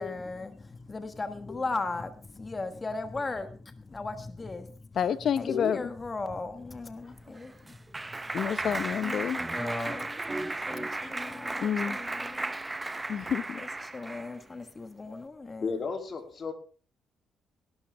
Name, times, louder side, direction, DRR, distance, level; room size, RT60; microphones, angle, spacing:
voice 1, 0.0-4.7 5.4-7.8 9.0-10.3 10.7-12.5 13.9-15.8, left 3 dB, 25° left, 1.4 m, -37 dB
voice 2, 4.9-5.9 8.3-9.4 11.6-12.0 13.1-13.6, left 8 dB, 60° left, 0.8 m, -29 dB
Clapping, 7.1-14.4, right 2 dB, 20° right, 0.7 m, -35 dB
voice 3, 15.6-16.5, left 5 dB, 45° left, 2.9 m, -35 dB
17.5 x 12.0 x 3.5 m
cardioid pair, 90°, 0 cm